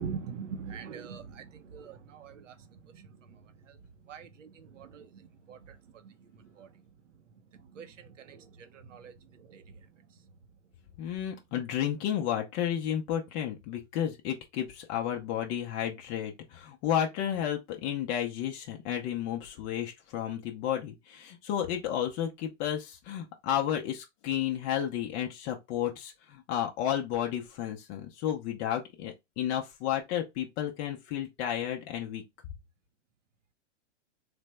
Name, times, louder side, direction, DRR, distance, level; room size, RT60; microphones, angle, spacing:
voice 1, 0.0-3.8 4.0-6.7 7.5-9.8, right 6 dB, 85° right, 0.7 m, -44 dB
voice 2, 11.0-32.2, left 10 dB, 25° left, 0.5 m, -32 dB
3.3 x 2.1 x 3.2 m
hypercardioid pair, 130°, 37 cm